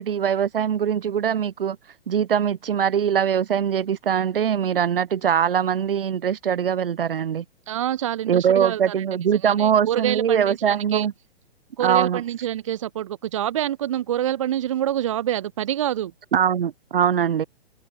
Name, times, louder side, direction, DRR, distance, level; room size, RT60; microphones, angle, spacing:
voice 1, 0.0-1.8 2.1-7.4 8.3-11.1 11.8-12.2 16.3-17.4, right 8 dB, 60° right, 2.4 m, -22 dB
voice 2, 7.7-11.1 11.8-16.1, right 11 dB, 30° right, 1.2 m, -26 dB
hypercardioid pair, 180°, 31 cm